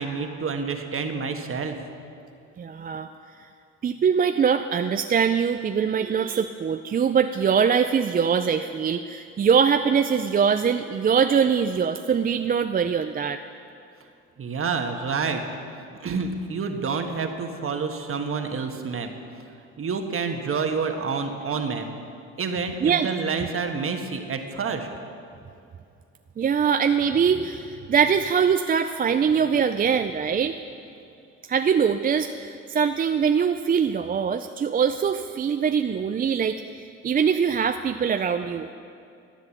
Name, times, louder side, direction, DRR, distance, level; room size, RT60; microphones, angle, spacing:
voice 1, 0.0-1.7 14.4-15.4 16.0-19.1 19.8-21.9 22.4-24.9, right 5 dB, 45° right, 5 dB, 1.3 m, -28 dB
voice 2, 2.6-3.1 3.8-13.4 22.8-23.1 26.4-30.6 31.5-38.7, right 7 dB, 30° right, 8 dB, 0.4 m, -23 dB
13.0 x 7.9 x 7.1 m, 2.5 s
cardioid pair, 90°, 30 cm